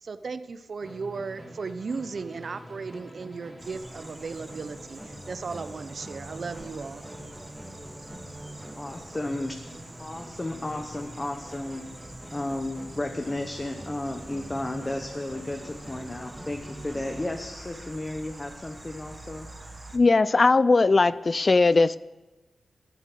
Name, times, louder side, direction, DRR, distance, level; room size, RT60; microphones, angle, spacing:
voice 1, 0.0-7.0, right 4 dB, 55° right, 11 dB, 0.5 m, -36 dB
Musical instrument, 0.8-17.5, right 1 dB, ahead, 2.1 m, -45 dB
sound 1, 3.6-20.0, right 1 dB, 20° right, 1.0 m, -46 dB
voice 2, 8.7-9.5 10.0-11.8 12.3-19.5, left 1 dB, 20° left, 4 dB, 0.8 m, -33 dB
voice 3, 19.9-22.0, left 3 dB, 35° left, 18 dB, 0.3 m, -19 dB
11.5 x 7.5 x 7.4 m, 1.1 s
wide cardioid pair, 105°, 0 cm